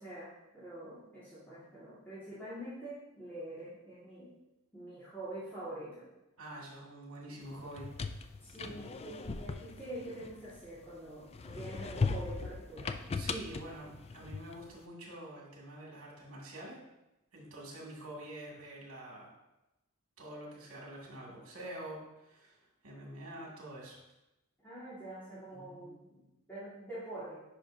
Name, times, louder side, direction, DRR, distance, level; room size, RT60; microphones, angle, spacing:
voice 1, 0.0-4.3 4.7-6.1 8.4-13.0 24.6-27.4, right 1 dB, 10° left, -12 dB, 2.0 m, -45 dB
voice 2, 6.4-7.9 13.1-16.8 17.3-19.3 20.2-24.0 25.5-25.9, right 1 dB, 75° right, -3 dB, 2.4 m, -46 dB
sound 1, 7.6-10.8 11.3-14.7, left 4 dB, 30° left, 0.3 m, -38 dB
10.0 x 5.3 x 2.7 m, 0.95 s
head